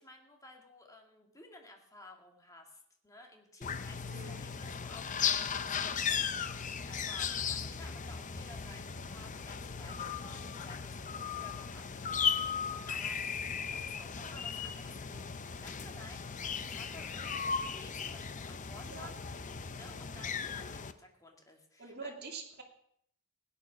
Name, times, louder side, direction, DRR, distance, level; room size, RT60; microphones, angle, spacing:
voice 1, 0.0-11.9 12.9-19.2 19.7-22.1, left 1 dB, 15° left, 2 dB, 2.0 m, -55 dB
sound 1, 3.6-20.9, left 6 dB, 35° left, 0.6 m, -37 dB
voice 2, 4.1-4.5 18.9-19.1 21.8-22.6, right 4 dB, 45° right, -1 dB, 2.7 m, -45 dB
16.5 x 9.8 x 6.1 m, 0.70 s
head